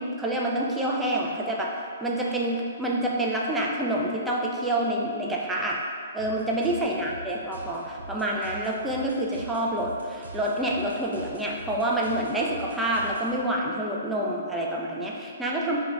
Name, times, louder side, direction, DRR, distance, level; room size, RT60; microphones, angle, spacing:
voice 1, 0.0-5.8 6.1-15.8, right 1 dB, 5° right, -3 dB, 0.4 m, -27 dB
sound 1, 6.2-13.6, right 3 dB, 70° right, 0.5 m, -44 dB
2.3 x 2.2 x 3.9 m, 2.1 s
figure-of-eight pair, 125°, 0 cm